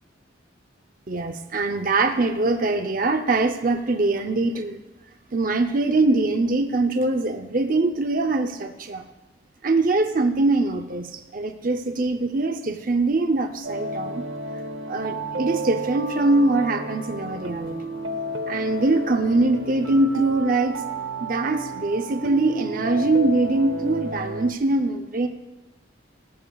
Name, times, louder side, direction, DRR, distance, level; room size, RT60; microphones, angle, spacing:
voice 1, 1.1-4.8 5.3-9.0 9.6-14.3 14.9-17.9 18.5-20.8 21.2-25.3, right 2 dB, 45° right, 6 dB, 0.7 m, -23 dB
sound 1, 13.6-24.5, right 1 dB, 70° right, 0.9 m, -32 dB
17.0 x 13.5 x 2.4 m, 1.1 s
head